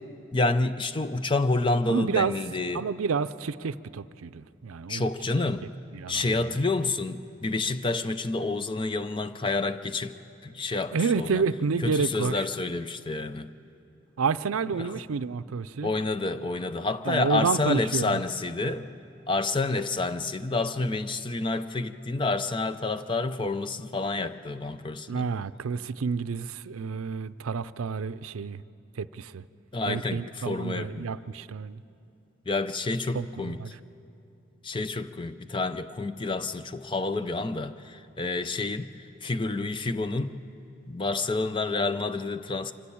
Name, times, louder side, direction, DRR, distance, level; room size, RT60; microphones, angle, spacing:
voice 1, 0.3-2.9 4.9-5.7 6.1-10.2 10.4-11.4 11.8-13.5 14.8-15.0 15.8-18.9 19.3-25.3 29.7-31.1 32.5-33.6 34.6-40.4 40.9-42.7, left 3 dB, 25° left, 11 dB, 0.5 m, -29 dB
voice 2, 1.9-2.3 2.7-5.1 5.9-6.6 10.9-12.5 14.2-15.9 17.1-18.2 25.1-28.6 29.0-29.4 29.9-31.8 33.1-33.7, right 5 dB, 90° right, 14 dB, 0.5 m, -29 dB
25.5 x 14.5 x 8.6 m, 2.8 s
head